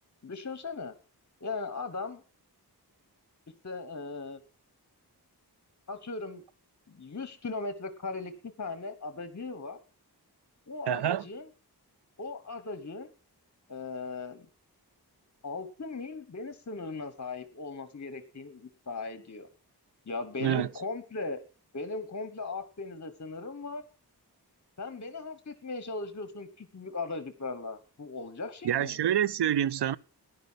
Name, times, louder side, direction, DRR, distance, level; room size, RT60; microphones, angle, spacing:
voice 1, 0.2-0.9 1.4-2.2 3.6-4.4 5.9-6.4 6.9-9.8 10.7-11.5 12.2-13.1 13.7-14.5 15.4-19.5 20.1-21.4 21.7-23.8 24.8-29.0, left 3 dB, 45° left, 1.2 m, -38 dB
voice 2, 10.9-11.2 20.4-20.7 28.6-30.0, right 10 dB, 85° right, 0.5 m, -27 dB
13.5 x 10.5 x 5.7 m
wide cardioid pair, 60°, 40 cm